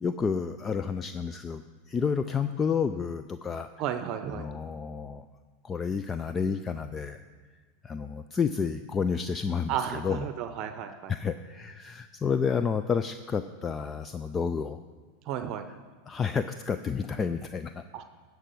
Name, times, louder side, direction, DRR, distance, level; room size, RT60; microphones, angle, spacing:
voice 1, 0.0-3.7 4.3-5.2 5.6-7.2 7.8-10.3 11.1-14.8 16.1-17.8, left 6 dB, 25° left, 10 dB, 0.4 m, -30 dB
voice 2, 3.8-4.5 9.7-11.1 15.3-15.7 17.9-18.0, right 9 dB, 50° right, 8 dB, 0.7 m, -33 dB
13.5 x 4.8 x 7.7 m, 1.5 s
hypercardioid pair, 100°, 0 cm